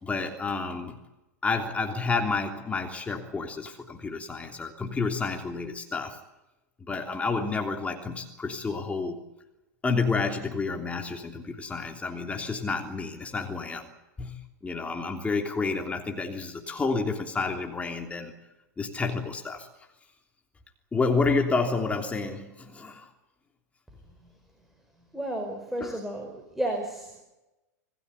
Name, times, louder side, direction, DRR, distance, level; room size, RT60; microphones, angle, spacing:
voice 1, 0.0-1.0 1.4-6.2 6.8-9.2 9.8-13.9 14.2-18.3 18.8-19.7 20.9-23.1 25.8-26.0, left 4 dB, 15° left, 3 dB, 3.2 m, -30 dB
voice 2, 25.1-27.2, right 1 dB, 5° right, 3 dB, 4.8 m, -32 dB
27.5 x 18.5 x 8.3 m, 1.0 s
figure-of-eight pair, 95°, 9 cm